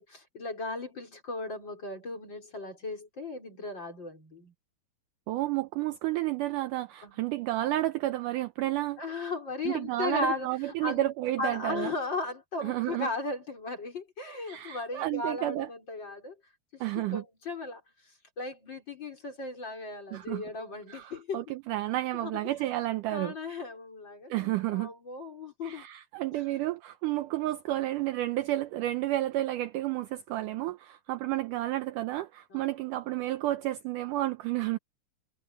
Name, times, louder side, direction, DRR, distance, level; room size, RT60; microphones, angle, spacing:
voice 1, 0.0-4.5 7.0-7.2 9.0-11.1 11.4-16.3 16.7-21.5 22.1-22.5 23.1-25.9 26.3-26.4 32.5-32.7, left 3 dB, 30° left, 5.1 m, -37 dB
voice 2, 5.3-9.0 9.7-11.9 12.6-13.1 14.5-15.7 16.8-17.2 20.1-20.4 20.9-23.3 24.3-24.9 25.6-34.8, right 16 dB, 85° right, 1.8 m, -31 dB
omnidirectional pair, 4.5 m